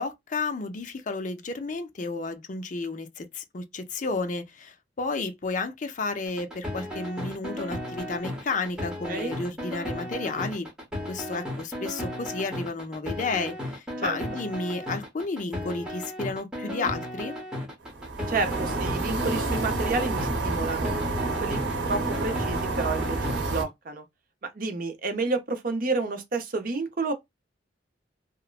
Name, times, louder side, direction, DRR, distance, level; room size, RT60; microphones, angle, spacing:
voice 1, 0.0-10.7 11.1-17.3, left 3 dB, 45° left, 0.5 m, -32 dB
sound 1, 6.3-23.4, left 1 dB, 5° right, 0.9 m, -35 dB
sound 2, 17.8-23.6, right 3 dB, 70° right, 0.9 m, -29 dB
voice 2, 18.3-20.9 21.4-24.0 24.4-27.1, right 3 dB, 50° right, 0.6 m, -30 dB
3.0 x 2.1 x 2.3 m
head